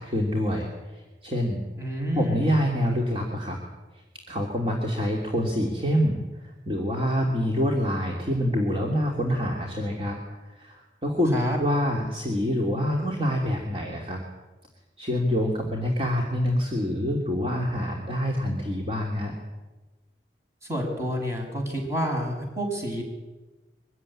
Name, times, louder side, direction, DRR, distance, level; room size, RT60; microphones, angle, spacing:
voice 1, 0.0-1.6 2.1-3.6 4.3-14.2 15.0-19.3, equal, 30° right, -1 dB, 3.0 m, -26 dB
voice 2, 1.8-2.5 11.3-11.6 20.7-23.0, equal, 15° right, 1 dB, 6.6 m, -28 dB
23.5 x 15.5 x 10.0 m, 1.2 s
head